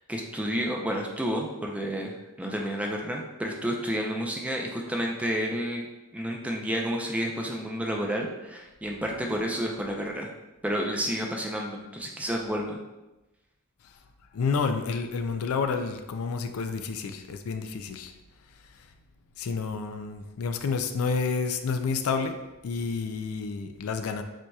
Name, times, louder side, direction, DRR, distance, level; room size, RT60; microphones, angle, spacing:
voice 1, 0.1-5.9 6.1-10.3 10.6-12.8, equal, 5° right, 0 dB, 0.5 m, -30 dB
voice 2, 14.3-18.1 19.4-22.4 22.6-24.2, left 5 dB, 70° left, 7 dB, 0.4 m, -29 dB
7.6 x 2.8 x 2.3 m, 1.0 s
head